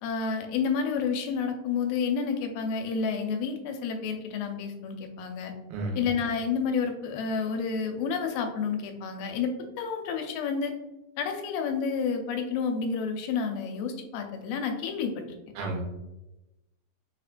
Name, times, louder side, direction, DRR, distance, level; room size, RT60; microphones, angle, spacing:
voice 1, 0.0-5.5 6.0-10.7 11.2-15.2, left 5 dB, 90° left, 5 dB, 2.3 m, -30 dB
voice 2, 5.7-6.0 15.6-15.8, right 2 dB, 90° right, 0 dB, 2.3 m, -31 dB
5.4 x 2.1 x 2.4 m, 0.98 s
omnidirectional pair, 3.9 m